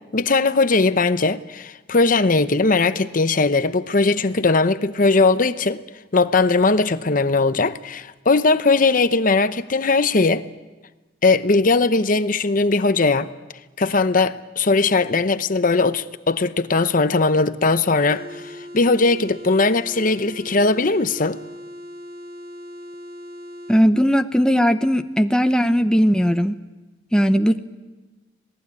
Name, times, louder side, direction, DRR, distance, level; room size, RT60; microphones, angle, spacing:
voice 1, 0.1-5.8 6.1-10.4 11.2-13.3 13.8-21.4, left 3 dB, 45° left, 0.8 m, -19 dB
sound 1, 18.1-23.8, left 1 dB, 55° right, 1.9 m, -39 dB
voice 2, 23.7-26.5 27.1-27.6, equal, 5° left, 0.8 m, -18 dB
27.5 x 19.0 x 9.7 m
head